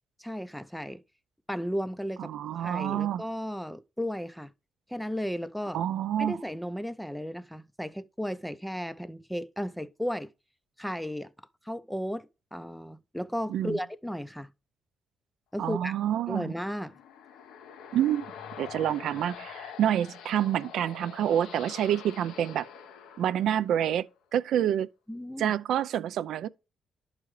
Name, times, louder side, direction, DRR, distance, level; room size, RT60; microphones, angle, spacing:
voice 1, 0.2-1.0 1.5-4.5 4.9-5.8 6.2-10.3 10.8-11.3 11.7-14.5 15.5-15.9 16.3-17.0 25.1-25.5, equal, 5° left, 0.4 m, -34 dB
voice 2, 2.2-3.2 5.7-6.4 13.5-13.8 15.6-16.5 17.9-18.3 18.6-22.7 23.2-24.1 24.3-24.9 25.4-26.5, right 10 dB, 75° right, 0.4 m, -27 dB
sound 1, 16.5-24.0, left 7 dB, 90° left, 0.8 m, -46 dB
11.0 x 4.8 x 3.2 m
cardioid pair, 90°, 0 cm